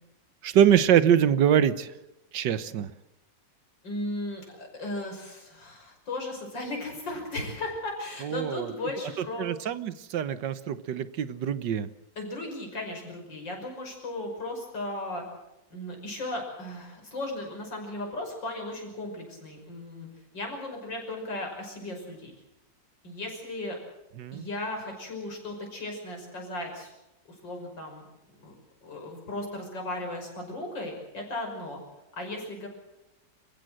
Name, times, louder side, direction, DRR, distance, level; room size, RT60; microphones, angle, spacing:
voice 1, 0.4-1.9 2.3-2.9 8.2-8.7 9.4-11.9 24.2-24.4, right 9 dB, 70° right, 14 dB, 1.6 m, -24 dB
voice 2, 3.8-9.5 12.2-15.2 15.7-20.1 20.3-22.3 23.0-23.8 24.3-26.9 27.3-28.0 28.4-28.5 28.8-31.8 32.2-32.7, left 2 dB, 75° left, 2 dB, 6.6 m, -36 dB
27.0 x 15.5 x 7.8 m, 0.94 s
omnidirectional pair, 2.0 m